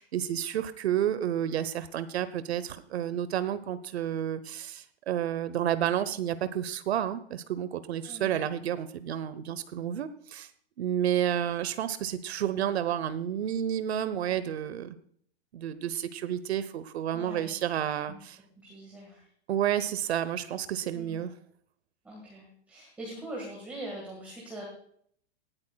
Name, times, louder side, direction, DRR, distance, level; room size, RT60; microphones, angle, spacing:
voice 1, 0.0-10.5 10.8-15.0 15.5-18.4 19.5-21.3, right 10 dB, 75° right, 14 dB, 0.9 m, -30 dB
voice 2, 8.0-8.4 17.1-17.5 18.1-18.2 18.6-19.2 20.9-21.2 22.0-24.6, right 1 dB, 5° right, -3 dB, 1.7 m, -42 dB
19.0 x 14.0 x 2.3 m, 0.63 s
supercardioid pair, 180°, 32 cm